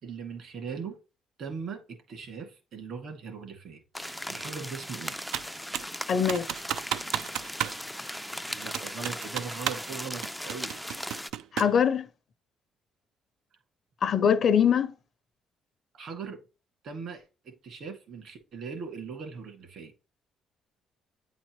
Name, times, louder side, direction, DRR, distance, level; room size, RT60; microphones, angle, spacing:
voice 1, 0.0-1.0 1.4-5.2 8.4-10.8 15.9-16.4 16.8-19.9, right 5 dB, 60° right, 2.1 m, -40 dB
sound 1, 3.9-11.3, equal, ahead, 0.3 m, -38 dB
Computer keyboard, 5.3-6.0 6.3-7.8 8.1-8.2 8.7-9.9 10.2-11.8, right 11 dB, 80° right, 0.4 m, -33 dB
voice 2, 6.1-6.5 11.5-12.1 14.0-14.9, left 7 dB, 50° left, 0.6 m, -23 dB
8.9 x 4.1 x 3.1 m
cardioid pair, 130°, 0 cm